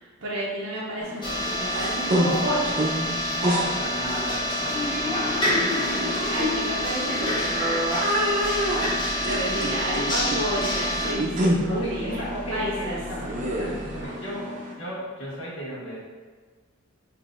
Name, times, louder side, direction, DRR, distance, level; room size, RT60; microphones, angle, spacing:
voice 1, 0.0-2.9 6.3-7.5 9.2-12.2 12.5-13.0, right 1 dB, 85° right, -7 dB, 0.7 m, -31 dB
sound 1, 1.0-14.7, equal, 35° right, 0.5 m, -29 dB
sound 2, 1.2-11.1, left 1 dB, 20° left, 0.8 m, -27 dB
voice 2, 3.3-5.3 8.6-8.9 11.7-14.5 14.8-16.0, equal, 80° left, -7 dB, 1.2 m, -34 dB
sound 3, 8.4-14.0, right 1 dB, 50° left, 0.9 m, -41 dB
5.7 x 2.6 x 2.4 m, 1.5 s
head